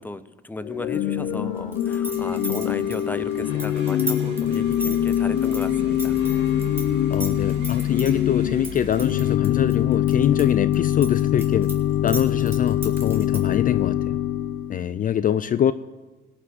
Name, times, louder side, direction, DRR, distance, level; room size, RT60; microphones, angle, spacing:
voice 1, 0.0-6.5, left 2 dB, 10° left, 13 dB, 0.7 m, -36 dB
Organ / Church bell, 0.6-14.8, left 11 dB, 80° left, 0.8 m, -23 dB
sound 1, 1.7-6.8 7.1-8.1 8.6-10.4 10.7-13.5, right 2 dB, 10° right, 2.8 m, -34 dB
sound 2, 2.0-9.4, right 4 dB, 65° right, 2.2 m, -41 dB
voice 2, 7.1-11.7 12.0-14.2 14.7-15.7, left 9 dB, 45° left, 14 dB, 0.4 m, -24 dB
17.5 x 6.0 x 7.7 m, 1.3 s
cardioid pair, 90°, 20 cm